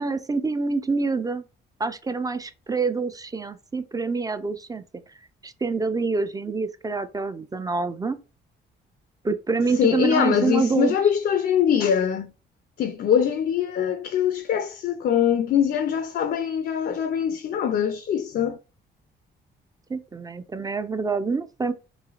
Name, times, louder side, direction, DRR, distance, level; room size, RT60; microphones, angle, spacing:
voice 1, 0.0-1.4 1.8-4.8 5.4-8.2 9.2-11.0 19.9-21.7, right 4 dB, 20° right, 0.4 m, -26 dB
voice 2, 9.7-12.3 12.8-18.6, left 8 dB, 55° left, 0.4 m, -23 dB
3.1 x 3.0 x 2.4 m
cardioid pair, 90°, 20 cm